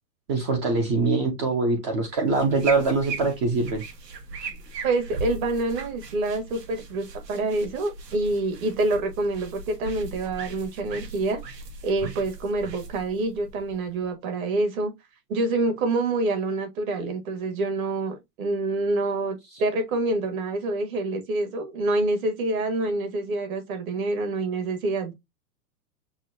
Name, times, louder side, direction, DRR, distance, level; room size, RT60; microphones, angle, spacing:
voice 1, 0.3-3.8, right 3 dB, 20° right, 0.4 m, -23 dB
sound 1, 2.1-14.1, right 3 dB, 90° right, 1.3 m, -39 dB
voice 2, 4.8-11.4 11.8-14.9 15.3-25.1, right 2 dB, 60° right, 1.7 m, -27 dB
6.1 x 2.1 x 2.6 m
hypercardioid pair, 130°, 48 cm